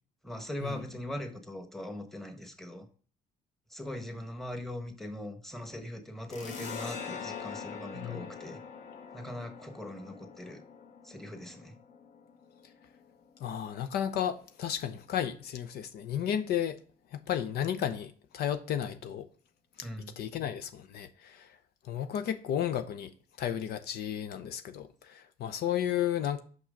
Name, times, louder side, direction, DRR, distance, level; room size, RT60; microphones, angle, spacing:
voice 1, 0.2-2.9 3.7-8.6 9.1-10.6 11.0-11.8 19.8-20.1, left 1 dB, ahead, 1.2 m, -41 dB
sound 1, 6.3-13.5, left 6 dB, 45° left, 1.2 m, -44 dB
voice 2, 13.4-16.8 17.1-19.3 19.8-19.9 20.2-21.6 21.8-23.1 23.4-26.4, left 10 dB, 70° left, 0.7 m, -33 dB
6.0 x 5.6 x 5.1 m
cardioid pair, 110°, 17 cm